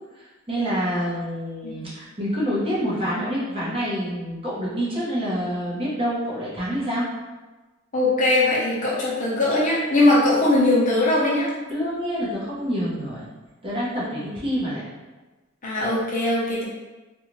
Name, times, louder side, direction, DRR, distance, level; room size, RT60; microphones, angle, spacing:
voice 1, 0.1-7.0 11.7-13.3 13.6-14.8, equal, 25° right, -8 dB, 0.8 m, -27 dB
voice 2, 7.9-11.5 15.6-16.6, left 2 dB, 40° left, -7 dB, 0.8 m, -20 dB
2.5 x 2.4 x 3.0 m, 1.2 s
head